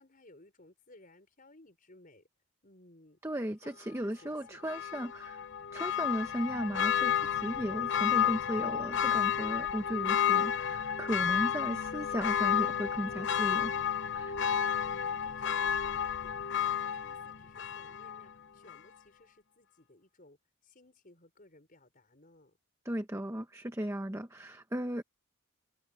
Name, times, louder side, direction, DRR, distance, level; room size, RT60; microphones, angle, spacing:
voice 1, 0.0-2.3 2.6-3.2 3.6-4.6 14.4-22.6, left 2 dB, 40° left, 5.3 m, -60 dB
voice 2, 3.2-5.5 5.7-13.8 14.1-14.5 22.8-25.0, right 1 dB, 15° right, 0.9 m, -36 dB
Church bell, 4.6-18.3 18.7-18.8, left 8 dB, 55° left, 0.8 m, -31 dB
head